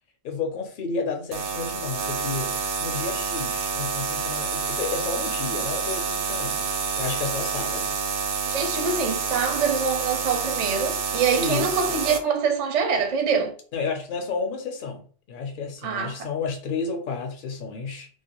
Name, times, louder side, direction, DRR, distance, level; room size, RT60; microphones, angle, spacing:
voice 1, 0.2-8.0 11.4-12.0 13.7-18.1, left 4 dB, 55° left, 0.7 m, -31 dB
sound 1, 1.3-12.2, right 5 dB, 80° right, 0.9 m, -28 dB
voice 2, 8.5-13.5 15.8-16.2, right 5 dB, 50° right, 0.5 m, -25 dB
2.3 x 2.2 x 2.9 m
omnidirectional pair, 1.1 m